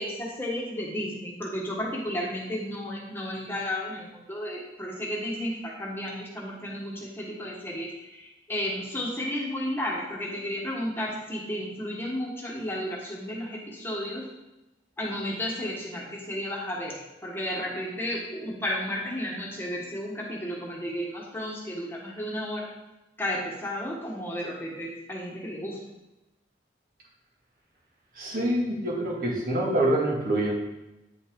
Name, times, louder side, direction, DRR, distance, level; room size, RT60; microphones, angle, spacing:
voice 1, 0.0-14.3 15.0-16.9 17.2-22.7 23.2-25.8, equal, 10° left, -3 dB, 1.5 m, -33 dB
voice 2, 28.1-30.5, right 1 dB, 50° right, -3 dB, 2.1 m, -26 dB
9.3 x 6.3 x 3.8 m, 0.97 s
head